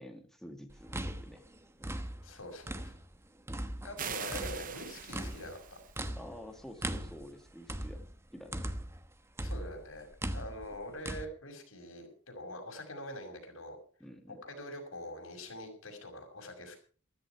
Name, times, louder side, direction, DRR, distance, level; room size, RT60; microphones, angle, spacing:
voice 1, 0.0-1.4 6.1-8.0 8.3-8.7 14.0-14.4, equal, ahead, 3 dB, 1.9 m, -49 dB
sound 1, 0.7-3.2 3.5-9.1 9.4-11.3, right 1 dB, 15° right, 1.1 m, -39 dB
voice 2, 2.2-3.0 3.8-5.8 9.4-13.8 14.3-16.8, left 1 dB, 80° left, 3 dB, 6.1 m, -44 dB
sound 2, 4.0-6.0, right 8 dB, 45° right, 0.7 m, -42 dB
15.5 x 14.0 x 4.7 m, 0.41 s
head